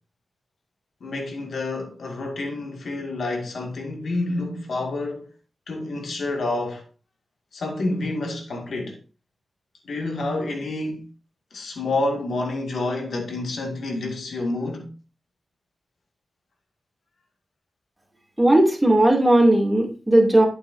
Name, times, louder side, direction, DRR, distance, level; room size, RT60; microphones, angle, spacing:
voice 1, 1.0-5.3 5.7-6.8 7.5-9.0 9.8-11.0 11.5-14.9, left 2 dB, 80° left, 2.1 m, -28 dB
voice 2, 18.4-20.5, right 1 dB, 10° right, 2.6 m, -17 dB
9.1 x 8.5 x 2.7 m
wide cardioid pair, 115°, 0 cm